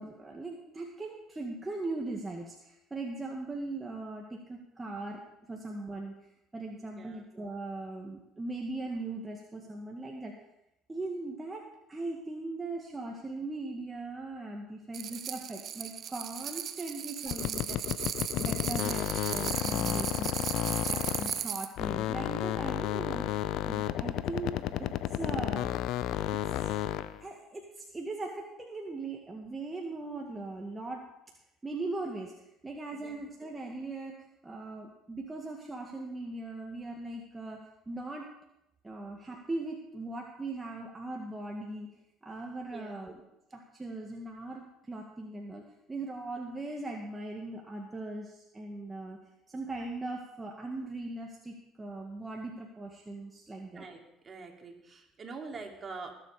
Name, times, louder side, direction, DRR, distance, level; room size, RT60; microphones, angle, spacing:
voice 1, 0.0-6.1 6.5-10.3 10.9-11.6 11.9-17.8 18.1-24.5 24.8-25.8 26.1-26.7 27.2-31.0 31.6-34.2 34.4-38.3 38.8-41.9 42.2-43.2 43.5-49.2 49.5-53.9, right 2 dB, 20° right, 0 dB, 1.7 m, -39 dB
sound 1, 14.9-21.7, right 9 dB, 55° right, 0.8 m, -36 dB
sound 2, 17.3-21.5 21.8-27.2, left 12 dB, 70° left, 0.6 m, -32 dB
voice 2, 18.7-19.1 32.9-33.2 42.7-43.1 53.7-56.1, right 4 dB, 35° right, 3 dB, 2.7 m, -45 dB
20.0 x 7.5 x 5.0 m, 0.84 s
hypercardioid pair, 65°, 0 cm